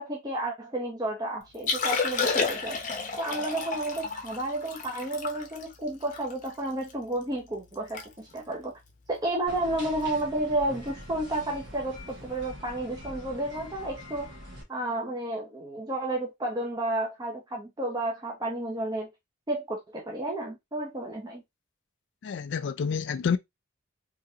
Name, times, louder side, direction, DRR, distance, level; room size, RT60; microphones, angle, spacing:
voice 1, 0.0-2.8 3.2-8.7 9.1-14.3 14.7-19.1 19.5-21.4, right 1 dB, 20° right, 0.6 m, -31 dB
Liquid, 1.5-6.9 7.4-7.5 7.7-8.1 8.3-8.6 9.2-9.4 10.9-11.0, left 4 dB, 35° left, 0.7 m, -31 dB
sound 1, 9.5-14.6, equal, 55° right, 1.5 m, -44 dB
voice 2, 22.2-23.4, left 6 dB, 55° left, 0.3 m, -28 dB
3.7 x 2.8 x 2.7 m
head